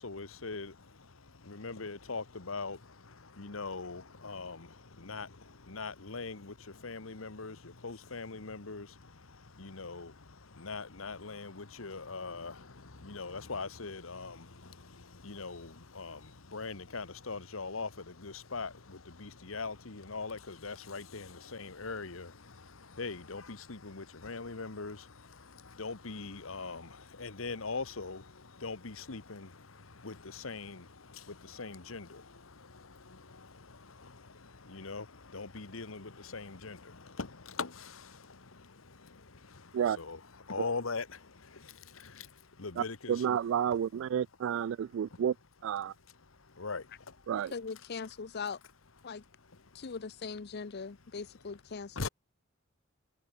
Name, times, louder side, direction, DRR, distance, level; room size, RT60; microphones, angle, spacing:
voice 1, 0.0-43.2 45.1-45.2 46.5-47.2 49.7-49.8 51.9-52.1, left 4 dB, 85° left, 1.4 m, -42 dB
voice 2, 42.8-45.3 45.6-45.9 47.3-47.5, right 8 dB, 65° right, 0.3 m, -31 dB
voice 3, 47.5-48.6 49.0-49.2 49.7-52.1, left 5 dB, 55° left, 0.7 m, -40 dB
head